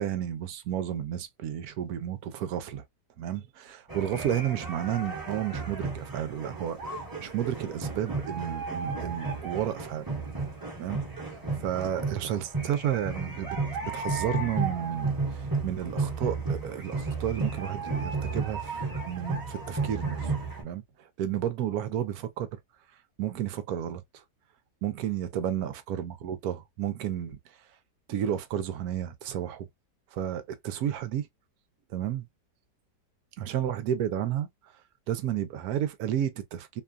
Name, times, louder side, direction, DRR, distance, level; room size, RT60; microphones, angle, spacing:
voice 1, 0.0-2.8 3.2-10.1 10.8-11.0 11.6-13.5 13.8-20.4 20.6-20.8 21.2-22.6 23.2-24.0 24.8-27.4 28.1-29.7 30.1-31.3 31.9-32.3 33.4-34.5 35.1-36.8, right 10 dB, 75° right, 1.0 m, -32 dB
sound 1, 3.9-20.6, right 3 dB, 15° right, 0.8 m, -33 dB
3.0 x 2.2 x 2.3 m
omnidirectional pair, 1.7 m